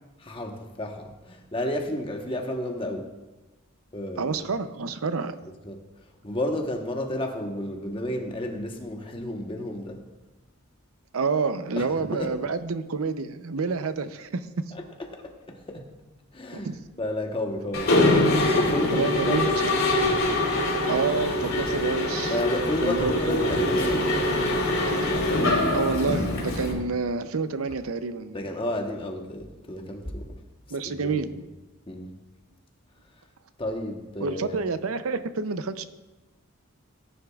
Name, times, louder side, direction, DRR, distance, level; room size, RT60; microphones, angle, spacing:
voice 1, 0.2-3.1 3.9-4.3 5.6-10.0 11.8-12.3 14.7-15.9 16.3-19.5 22.3-24.3 26.7-26.8 28.3-30.4 30.9-31.2 31.9-32.1 33.6-34.6, left 1 dB, 25° left, 2 dB, 1.1 m, -32 dB
voice 2, 4.2-5.4 11.1-14.5 16.5-16.7 18.9-19.8 20.9-22.4 22.8-23.5 25.7-28.4 30.7-31.4 34.2-35.9, right 4 dB, 80° right, 11 dB, 0.6 m, -28 dB
Mechanisms, 17.7-26.7, left 1 dB, 75° left, 3.0 m, -24 dB
17.5 x 10.0 x 2.4 m, 1.1 s
head